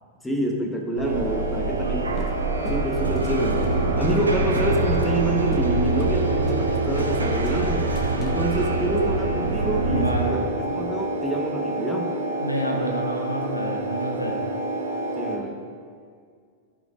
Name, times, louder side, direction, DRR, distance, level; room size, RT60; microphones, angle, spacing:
voice 1, 0.2-2.1 2.7-3.7 4.0-7.9 8.2-10.4 10.7-12.1 15.2-15.6, right 1 dB, 5° left, 1 dB, 1.1 m, -27 dB
sound 1, 1.0-15.4, right 1 dB, 70° left, 1.8 m, -29 dB
sound 2, 1.0-10.3, right 2 dB, 80° right, 0.9 m, -25 dB
sound 3, 2.2-4.3 4.6-4.7 5.0-5.2 5.5-5.7 6.0-6.2 6.5-7.2 7.4-8.4, left 2 dB, 25° left, 0.9 m, -38 dB
voice 2, 9.8-10.5 12.4-14.4, right 1 dB, 85° left, 1 dB, 1.0 m, -29 dB
14.0 x 5.3 x 2.5 m, 2.1 s
figure-of-eight pair, 90°, 0 cm